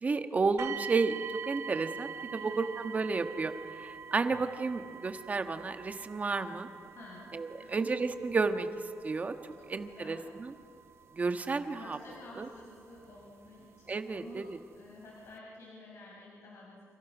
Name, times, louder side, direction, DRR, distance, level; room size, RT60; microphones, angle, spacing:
voice 1, 0.0-6.7 7.3-8.7 9.0-9.3 9.7-10.5 11.2-12.0 12.4-12.5 13.9-14.4, right 4 dB, 30° right, 8 dB, 1.4 m, -32 dB
sound 1, 0.6-13.5 14.3-14.4 15.0-15.1, right 7 dB, 60° right, 1.1 m, -45 dB
voice 2, 6.9-7.3 7.6-7.8 9.6-10.2 11.8-14.5 14.7-16.8, left 1 dB, 70° left, -4 dB, 5.8 m, -51 dB
29.5 x 27.5 x 6.2 m, 2.5 s
cardioid pair, 125°, 5 cm